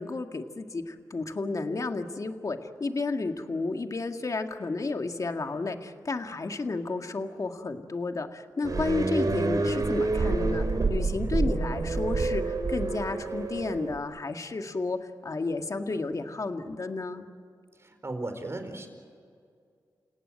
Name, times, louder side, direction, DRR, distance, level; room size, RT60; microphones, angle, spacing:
voice 1, 0.0-17.3, left 3 dB, 50° left, 6 dB, 1.8 m, -32 dB
sound 1, 8.6-14.0, right 3 dB, 55° right, 3.1 m, -28 dB
voice 2, 17.8-18.9, right 2 dB, 35° right, 6 dB, 4.5 m, -36 dB
29.5 x 17.0 x 9.0 m, 2.2 s
cardioid pair, 60°, 7 cm